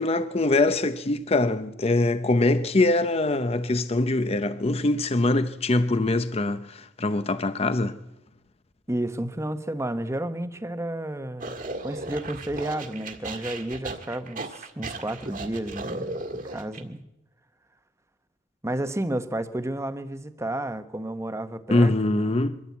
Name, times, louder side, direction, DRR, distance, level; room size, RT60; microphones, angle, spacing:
voice 1, 0.0-8.0 21.7-22.6, left 2 dB, 35° left, 0.7 m, -23 dB
voice 2, 8.9-11.6 11.8-17.0 18.6-22.3, right 1 dB, 15° right, 1.0 m, -31 dB
sound 1, 11.4-16.8, right 2 dB, 45° right, 1.8 m, -36 dB
23.0 x 13.5 x 8.4 m
head